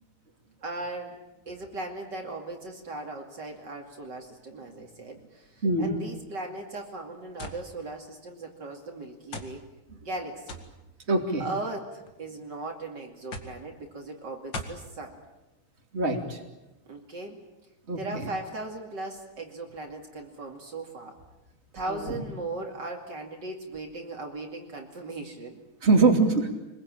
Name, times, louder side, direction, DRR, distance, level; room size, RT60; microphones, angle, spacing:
voice 1, 0.6-9.6 10.0-10.6 11.4-15.2 16.9-17.4 18.0-21.2 21.7-25.6, right 2 dB, 60° right, 2 dB, 3.1 m, -38 dB
voice 2, 5.6-5.9 11.1-11.5 15.9-16.4 17.9-18.3 21.9-22.2 25.8-26.5, right 3 dB, 30° right, 3 dB, 3.0 m, -23 dB
sound 1, 7.4-7.6 8.5-8.6 9.3-9.6 10.5-10.7 11.7-12.2 13.3-13.6 14.5-14.8, left 2 dB, 65° left, 2.9 m, -38 dB
25.5 x 21.5 x 8.9 m, 0.96 s
omnidirectional pair, 2.2 m